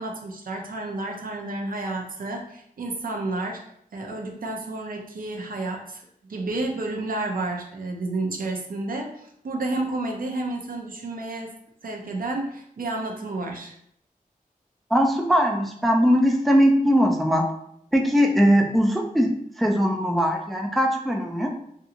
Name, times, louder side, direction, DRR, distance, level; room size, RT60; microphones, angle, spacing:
voice 1, 0.0-3.6 3.9-6.0 6.3-11.5 11.8-13.7, right 2 dB, 70° right, 1 dB, 0.6 m, -31 dB
voice 2, 14.9-17.5 17.9-21.5, equal, ahead, 1 dB, 0.3 m, -20 dB
2.7 x 2.6 x 2.4 m, 0.71 s
wide cardioid pair, 95°, 15 cm